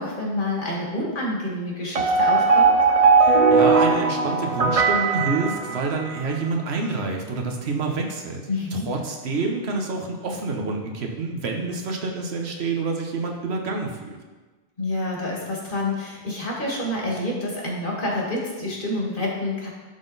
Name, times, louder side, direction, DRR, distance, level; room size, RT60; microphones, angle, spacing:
voice 1, 0.0-2.7 8.5-8.9 14.8-19.7, left 1 dB, 55° left, -3 dB, 1.8 m, -28 dB
sound 1, 1.9-6.3, right 4 dB, 45° right, 0.6 m, -18 dB
voice 2, 3.2-8.4 8.7-14.2, right 3 dB, 85° right, 2 dB, 1.3 m, -27 dB
11.5 x 3.9 x 4.0 m, 1.3 s
omnidirectional pair, 1.1 m